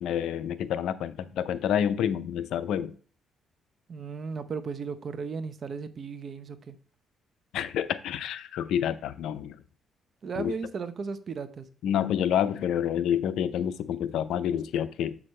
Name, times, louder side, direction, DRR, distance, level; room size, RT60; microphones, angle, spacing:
voice 1, 0.0-2.9 7.5-9.6 10.4-10.5 11.8-15.2, left 9 dB, 80° left, 0.5 m, -28 dB
voice 2, 3.9-6.8 10.2-11.7, right 5 dB, 50° right, 0.8 m, -35 dB
7.7 x 6.1 x 3.2 m
cardioid pair, 90°, 0 cm